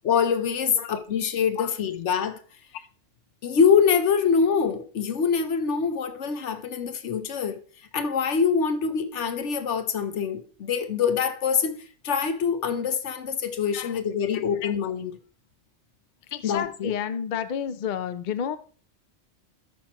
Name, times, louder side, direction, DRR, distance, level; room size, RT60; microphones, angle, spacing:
voice 1, 0.0-2.4 3.4-7.6 7.9-11.8 12.0-15.1 16.4-16.9, left 6 dB, 70° left, 1.2 m, -24 dB
voice 2, 14.3-14.7 16.3-18.6, left 8 dB, 55° left, 0.6 m, -31 dB
13.0 x 5.9 x 3.0 m
omnidirectional pair, 1.3 m